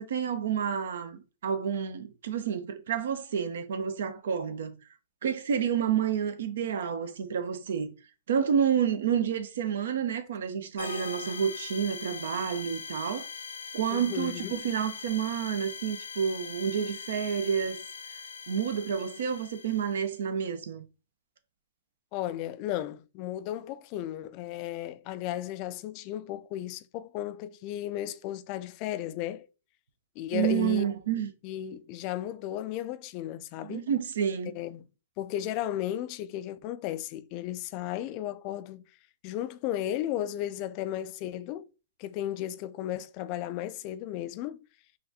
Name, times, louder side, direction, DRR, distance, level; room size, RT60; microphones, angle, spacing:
voice 1, 0.0-4.7 5.2-7.9 8.3-13.3 13.7-17.8 18.5-20.8 30.3-31.3 33.7-34.6, right 8 dB, 70° right, 0.6 m, -29 dB
sound 1, 10.8-20.2, left 6 dB, 85° left, 0.8 m, -41 dB
voice 2, 13.9-14.6 22.1-29.5 30.2-33.9 34.5-34.8 35.2-38.8 39.2-41.6 42.0-44.6, left 12 dB, 40° left, 0.3 m, -35 dB
4.0 x 2.5 x 2.7 m
hypercardioid pair, 125°, 0 cm